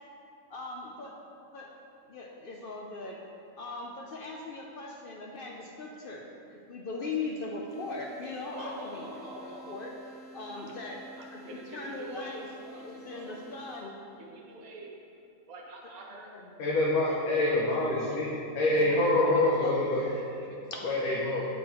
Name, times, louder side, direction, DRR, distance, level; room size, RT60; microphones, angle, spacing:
voice 1, 0.5-1.2 1.5-1.7 2.1-3.2 3.6-9.0 9.4-9.9 10.3-11.0 11.3-12.5 12.8-14.0 16.1-16.5 18.6-19.1 19.5-20.2 20.7-20.8, left 3 dB, 65° left, 0 dB, 0.5 m, -40 dB
sound 1, 7.7-13.8, right 1 dB, 15° right, 1.4 m, -50 dB
voice 2, 8.5-9.9 10.5-10.6 11.2-12.4 12.6-13.8 14.2-14.9 15.5-16.3 17.1-17.7 18.0-18.2 18.9-19.3 19.6-21.2, right 2 dB, 75° right, -2 dB, 1.3 m, -46 dB
voice 3, 16.6-18.3 18.5-20.0 20.8-21.5, left 2 dB, 80° left, -5 dB, 1.3 m, -26 dB
7.4 x 4.6 x 4.2 m, 2.5 s
omnidirectional pair, 1.5 m